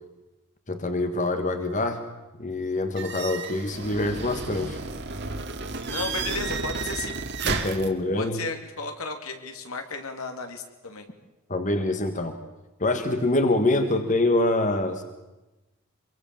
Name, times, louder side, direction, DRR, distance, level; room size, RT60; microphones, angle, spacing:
voice 1, 0.7-2.0 2.4-4.8 7.4-8.4 11.5-12.4 12.8-15.0, left 2 dB, 35° left, 7 dB, 1.6 m, -25 dB
sound 1, 3.0-7.9, right 4 dB, 50° right, 2.3 m, -32 dB
voice 2, 5.9-7.2 8.1-11.1, left 4 dB, 75° left, 5 dB, 3.1 m, -34 dB
25.5 x 23.5 x 7.2 m, 1.0 s
head